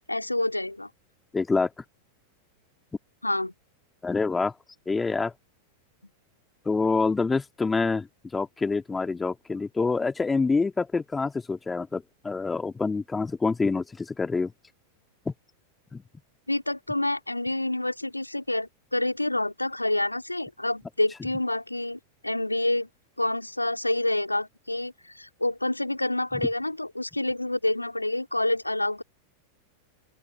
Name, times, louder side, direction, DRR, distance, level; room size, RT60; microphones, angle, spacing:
voice 1, 0.1-0.9 3.2-3.5 16.5-22.9 23.2-29.0, left 1 dB, 85° left, 2.8 m, -28 dB
voice 2, 1.3-1.7 4.0-4.5 4.9-5.3 6.7-8.1 8.3-14.5 15.3-15.4 15.9-16.0, left 4 dB, 10° left, 3.4 m, -26 dB
open air
figure-of-eight pair, 90°, 0 cm